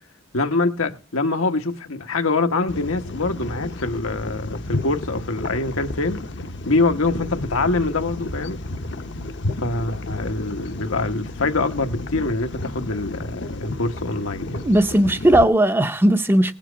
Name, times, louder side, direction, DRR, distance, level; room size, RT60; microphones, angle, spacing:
voice 1, 0.3-6.2 6.7-8.6 9.6-14.6, left 3 dB, 85° left, 1.2 m, -24 dB
sound 1, 2.7-15.4, left 2 dB, 55° left, 0.8 m, -32 dB
voice 2, 14.6-16.5, right 1 dB, 10° right, 0.5 m, -17 dB
18.5 x 7.5 x 5.1 m
head